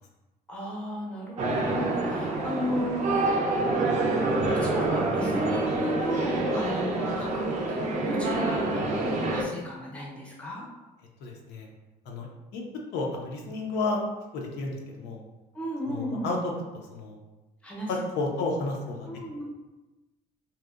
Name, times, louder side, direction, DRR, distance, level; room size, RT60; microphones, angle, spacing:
voice 1, 0.5-3.5 4.5-10.7 15.5-16.3 17.6-17.9 19.1-19.4, equal, 5° left, -4 dB, 0.6 m, -34 dB
sound 1, 1.4-9.4, right 2 dB, 45° right, 0.4 m, -27 dB
voice 2, 11.2-11.7 12.1-12.6 12.9-14.0 14.3-15.2 15.8-16.4 16.9-17.2 17.9-19.1, left 3 dB, 80° left, 0 dB, 0.5 m, -32 dB
2.7 x 2.0 x 2.3 m, 1.1 s
cardioid pair, 110°, 17 cm